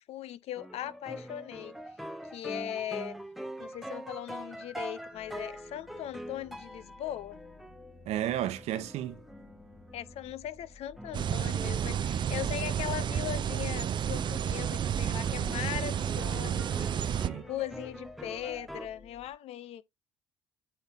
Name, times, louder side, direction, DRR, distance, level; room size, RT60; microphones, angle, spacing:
voice 1, 0.0-1.8 2.3-3.2 3.6-7.4 9.9-19.8, left 11 dB, 65° left, 0.6 m, -39 dB
sound 1, 0.6-10.3 11.0-13.9 14.2-18.9, right 1 dB, ahead, 0.9 m, -45 dB
sound 2, 5.1-19.3, left 3 dB, 30° left, 2.3 m, -55 dB
voice 2, 8.1-9.2 17.2-17.4, right 12 dB, 70° right, 1.0 m, -32 dB
sound 3, 11.1-17.3, right 9 dB, 45° right, 0.4 m, -31 dB
8.6 x 3.4 x 3.9 m
supercardioid pair, 75°, 11 cm